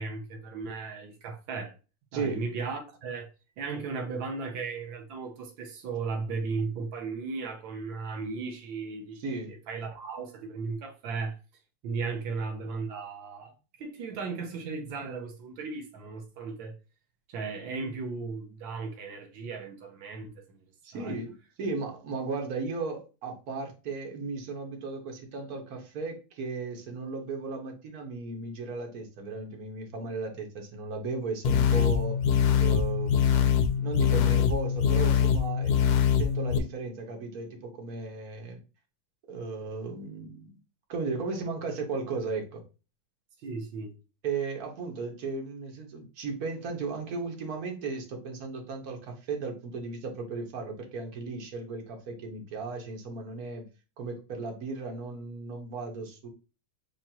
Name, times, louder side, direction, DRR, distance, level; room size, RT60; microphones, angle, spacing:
voice 1, 0.0-1.7 2.1-3.3 3.6-11.4 11.8-16.7 17.3-20.6 20.9-21.2 43.4-43.9 54.3-54.4, right 4 dB, 85° right, 1.6 m, -36 dB
voice 2, 2.1-2.4 9.2-9.5 20.8-32.2 32.6-38.6 39.3-40.6 40.9-42.6 44.2-53.7 54.0-56.3, right 4 dB, 55° right, 1.6 m, -35 dB
sound 1, 31.4-36.6, left 8 dB, 70° left, 1.1 m, -23 dB
7.2 x 2.5 x 2.9 m
omnidirectional pair, 2.1 m